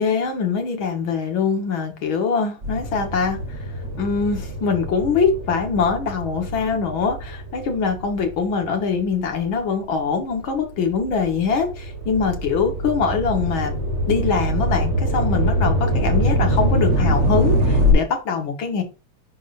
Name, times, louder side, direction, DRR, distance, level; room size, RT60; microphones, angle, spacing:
voice 1, 0.0-3.4 4.0-13.8 14.1-18.8, left 5 dB, 80° left, 5 dB, 2.3 m, -23 dB
sound 1, 2.6-9.4 9.9-17.9, equal, 40° right, 1.5 m, -24 dB
11.0 x 3.7 x 2.6 m, 0.32 s
omnidirectional pair, 2.2 m